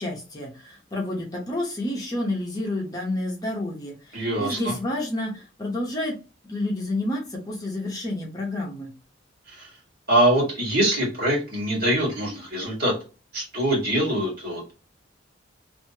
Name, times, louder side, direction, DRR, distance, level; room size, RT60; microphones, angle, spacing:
voice 1, 0.0-6.1 6.5-8.9, left 1 dB, 20° left, -2 dB, 0.9 m, -29 dB
voice 2, 4.1-4.7 9.5-9.7 10.1-12.9 13.3-14.7, right 1 dB, 50° right, -3 dB, 1.8 m, -23 dB
3.1 x 2.7 x 2.8 m, 0.33 s
head